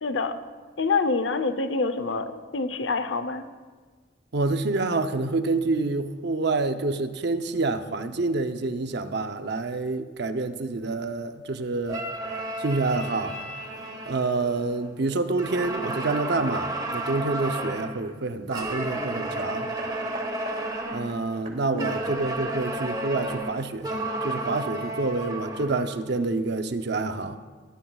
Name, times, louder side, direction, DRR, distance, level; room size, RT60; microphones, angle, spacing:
voice 1, 0.0-0.4 0.8-3.5 21.7-22.0, left 4 dB, 75° left, 10 dB, 0.8 m, -26 dB
voice 2, 4.3-12.1 12.6-13.4 14.1-19.7 20.9-27.4, right 3 dB, 60° right, 8 dB, 0.7 m, -27 dB
sound 1, 11.9-14.9 15.4-18.0 18.5-21.1 21.8-26.0, right 2 dB, 20° right, 1.3 m, -32 dB
Hammer, 18.7-23.4 24.3-24.4, right 2 dB, 45° right, 1.9 m, -44 dB
20.0 x 14.0 x 2.4 m, 1.5 s
head